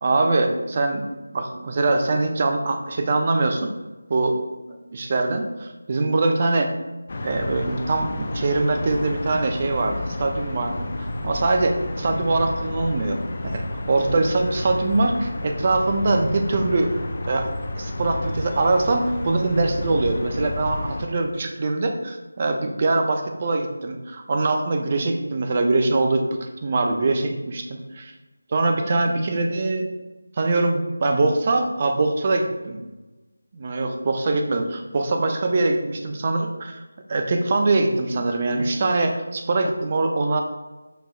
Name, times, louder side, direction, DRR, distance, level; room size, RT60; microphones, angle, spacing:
voice 1, 0.0-3.7 4.1-4.4 4.7-6.7 7.2-10.9 11.2-13.2 13.4-13.6 13.9-16.9 17.3-17.5 17.8-26.2 26.6-28.1 28.5-29.9 30.4-32.9 33.5-36.8 37.1-40.4, right 2 dB, 35° right, 4 dB, 0.4 m, -23 dB
sound 1, 7.1-21.1, left 1 dB, 45° left, 0.4 m, -31 dB
5.8 x 2.5 x 2.3 m, 1.1 s
figure-of-eight pair, 165°, 0 cm